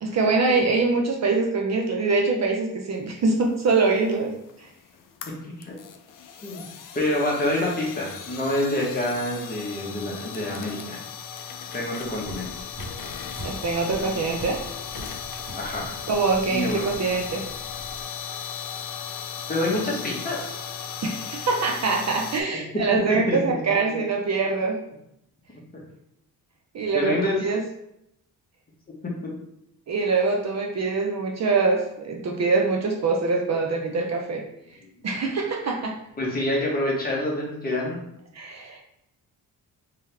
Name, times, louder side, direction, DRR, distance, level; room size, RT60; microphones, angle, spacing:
voice 1, 0.0-4.3 4.6-4.7 13.4-14.6 16.1-17.4 21.0-24.8 26.7-27.6 29.9-34.4 35.0-36.0 38.3-38.8, right 4 dB, 45° right, 1 dB, 0.6 m, -24 dB
sound 1, 3.6-22.4, left 7 dB, 60° left, 0.5 m, -37 dB
voice 2, 5.4-5.7 6.4-6.6 6.9-11.0 11.7-12.5 15.5-15.9 16.5-16.9 19.5-20.6 23.3-23.6 26.9-27.4 36.2-38.0, left 1 dB, 25° left, -3 dB, 1.2 m, -27 dB
sound 2, 12.0-18.0, right 1 dB, 60° right, 1.4 m, -42 dB
3.6 x 2.9 x 3.4 m, 0.79 s
cardioid pair, 115°, 39 cm